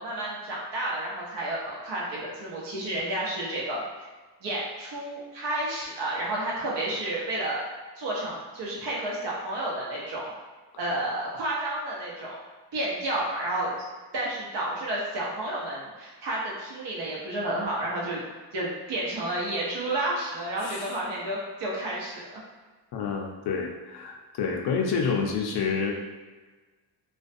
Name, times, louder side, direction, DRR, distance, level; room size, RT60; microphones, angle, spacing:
voice 1, 0.0-3.8 4.4-7.6 8.0-10.3 10.8-12.4 12.7-13.7 14.1-18.2 18.5-22.4, right 1 dB, 80° right, -4 dB, 0.9 m, -31 dB
voice 2, 20.6-21.0 22.9-25.9, left 5 dB, 65° left, 2 dB, 0.5 m, -28 dB
2.4 x 2.2 x 2.5 m, 1.3 s
cardioid pair, 110°, 42 cm